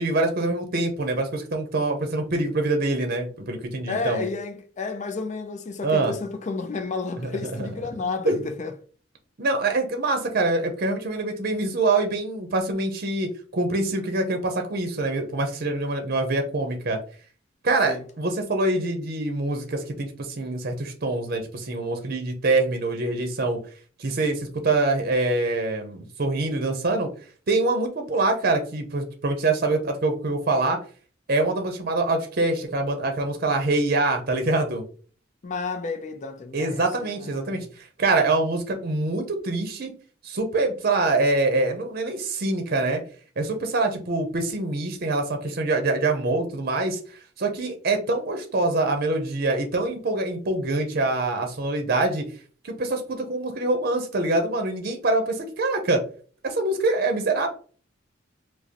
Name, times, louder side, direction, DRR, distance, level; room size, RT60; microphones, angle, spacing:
voice 1, 0.0-4.3 5.8-6.1 7.2-7.3 7.6-7.7 8.3-8.4 9.4-17.0 17.6-23.6 24.0-27.1 27.5-30.8 31.3-34.8 36.5-39.9 40.2-43.0 43.4-52.3 52.6-56.0 56.4-57.5, right 2 dB, 50° right, 0.6 m, -25 dB
voice 2, 3.9-8.7 17.9-18.0 35.4-37.7, left 4 dB, 40° left, 0.5 m, -31 dB
4.9 x 2.0 x 2.8 m
head